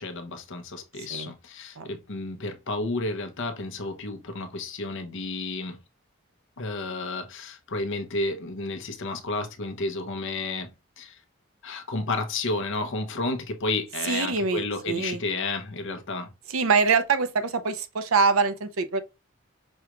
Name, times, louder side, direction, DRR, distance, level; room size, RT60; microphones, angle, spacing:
voice 1, 0.0-5.8 6.6-10.7 11.0-11.2 11.6-16.3, left 2 dB, 65° left, 0.8 m, -31 dB
voice 2, 14.0-15.2 16.5-19.0, right 5 dB, 75° right, 0.7 m, -24 dB
5.4 x 3.0 x 2.3 m
head